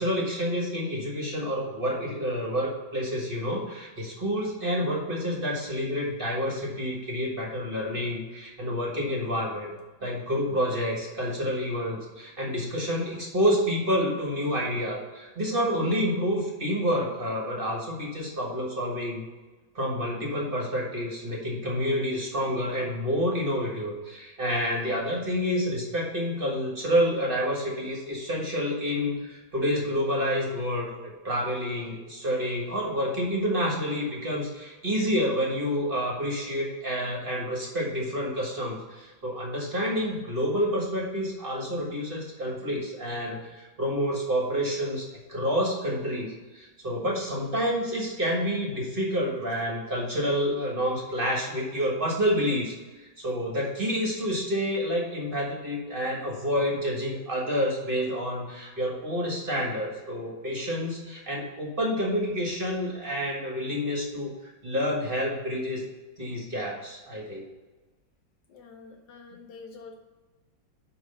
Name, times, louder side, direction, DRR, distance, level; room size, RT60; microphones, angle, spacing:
voice 1, 0.0-9.7 10.0-19.2 19.7-65.8 66.2-67.4, equal, 30° right, -2 dB, 1.5 m, -28 dB
voice 2, 68.5-69.9, left 4 dB, 65° left, 4 dB, 1.2 m, -46 dB
5.5 x 5.2 x 6.7 m, 1.2 s
omnidirectional pair, 2.1 m